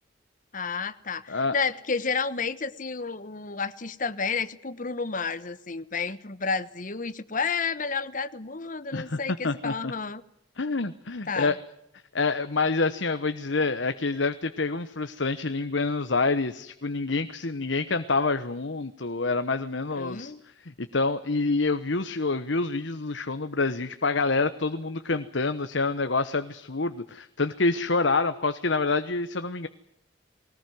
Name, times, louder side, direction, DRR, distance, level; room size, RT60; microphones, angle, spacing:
voice 1, 0.5-10.2 11.3-11.6 20.0-20.4, left 5 dB, 45° left, 15 dB, 1.2 m, -31 dB
voice 2, 9.4-9.9 10.6-11.6 12.1-20.3 20.6-29.7, left 3 dB, 75° left, 10 dB, 1.1 m, -27 dB
21.5 x 19.0 x 9.4 m, 0.78 s
head